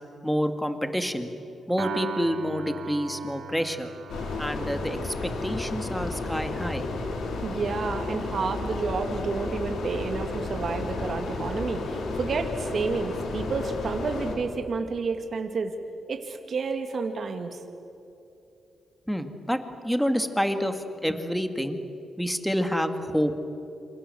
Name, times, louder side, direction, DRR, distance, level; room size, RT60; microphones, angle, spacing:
voice 1, 0.2-1.3 1.7-3.9 4.4-6.9 19.1-19.6 19.8-21.8 22.2-23.3, equal, ahead, 8 dB, 2.0 m, -28 dB
Piano, 1.8-8.2, right 5 dB, 85° right, 2.9 m, -40 dB
sound 1, 4.1-14.4, left 3 dB, 85° left, 4.3 m, -32 dB
voice 2, 7.4-15.7 16.1-17.6, right 4 dB, 50° right, 5 dB, 2.2 m, -30 dB
28.0 x 26.5 x 7.8 m, 2.9 s
cardioid pair, 105°, 0 cm